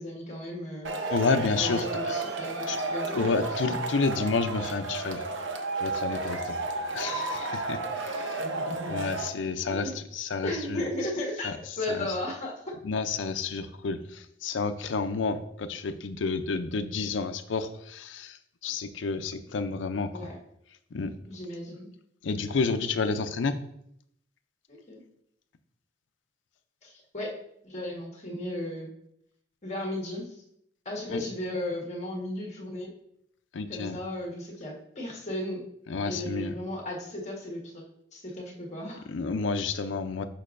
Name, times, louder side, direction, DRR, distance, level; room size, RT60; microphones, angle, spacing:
voice 1, 0.0-0.9 1.6-3.7 9.7-9.9 10.4-11.5 11.8-12.7 20.1-20.4 21.3-21.9 24.7-25.0 26.8-27.3 27.6-28.9 29.6-30.3 30.8-32.9 33.7-35.6 36.0-37.8 38.1-39.1, left 1 dB, 40° left, 0 dB, 1.4 m, -35 dB
Male speech man speaking / Shout / Clapping, 0.8-9.3, right 3 dB, 80° right, 0.7 m, -32 dB
voice 2, 1.1-2.1 2.7-2.8 3.2-5.2 5.8-6.6 6.9-8.4 8.7-10.8 11.4-11.6 11.9-12.1 12.8-20.2 20.9-21.1 22.2-23.5 31.1-31.2 33.5-34.0 35.9-36.5 39.1-40.3, left 4 dB, 80° left, 10 dB, 0.5 m, -30 dB
6.5 x 5.9 x 2.5 m, 0.74 s
head